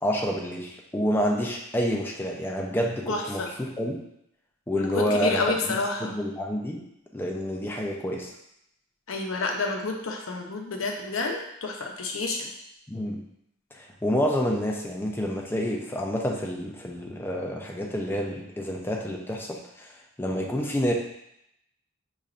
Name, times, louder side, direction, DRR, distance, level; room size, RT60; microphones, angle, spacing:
voice 1, 0.0-4.0 4.7-5.4 5.7-6.8 7.1-8.3 12.9-13.2 13.8-19.9 20.2-20.9, equal, 10° left, -1 dB, 0.6 m, -28 dB
voice 2, 3.1-3.5 4.7-6.1 9.1-12.5, left 3 dB, 85° left, 2 dB, 0.7 m, -29 dB
6.7 x 3.1 x 2.5 m, 0.78 s
head